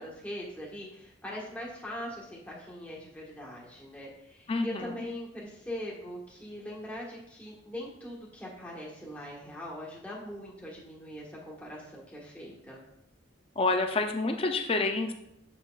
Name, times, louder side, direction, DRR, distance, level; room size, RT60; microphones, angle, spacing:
voice 1, 0.0-12.8, equal, 10° left, -4 dB, 1.4 m, -41 dB
voice 2, 4.5-4.9 13.6-15.1, left 3 dB, 30° left, 6 dB, 0.6 m, -28 dB
7.8 x 5.9 x 2.4 m, 0.79 s
head